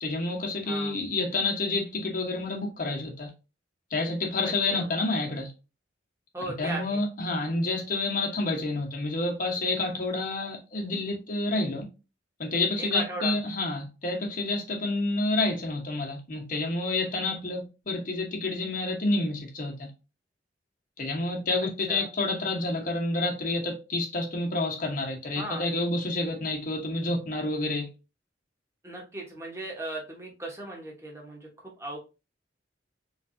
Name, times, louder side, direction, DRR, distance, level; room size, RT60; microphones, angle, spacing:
voice 1, 0.0-3.3 3.9-5.5 6.6-11.8 12.4-19.9 21.0-27.9, left 2 dB, 50° left, 1.0 m, -29 dB
voice 2, 0.7-1.0 4.4-4.9 6.3-7.0 12.8-13.4 21.9-22.1 25.3-25.7 28.8-32.0, right 1 dB, 15° right, 1.0 m, -37 dB
3.3 x 3.2 x 2.6 m
head